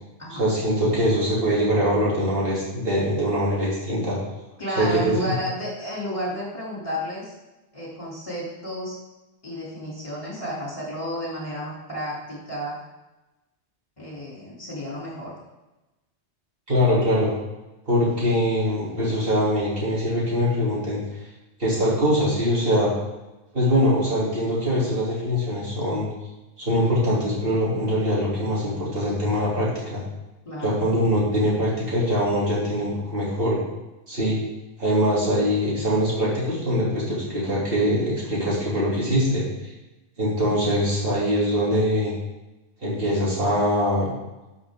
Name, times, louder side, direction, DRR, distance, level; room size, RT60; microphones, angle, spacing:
voice 1, 0.3-4.2 4.8-5.3 16.7-17.3 17.9-21.0 21.6-22.9 23.5-26.1 26.6-30.0 30.6-33.6 34.1-34.4 34.8-39.4 40.2-42.1 42.8-44.1, equal, 55° right, -6 dB, 3.2 m, -23 dB
voice 2, 4.6-7.3 7.7-9.0 9.4-12.8 14.0-15.3 30.4-30.8, equal, 30° left, -5 dB, 3.2 m, -32 dB
12.0 x 5.7 x 3.7 m, 1.0 s
omnidirectional pair, 1.1 m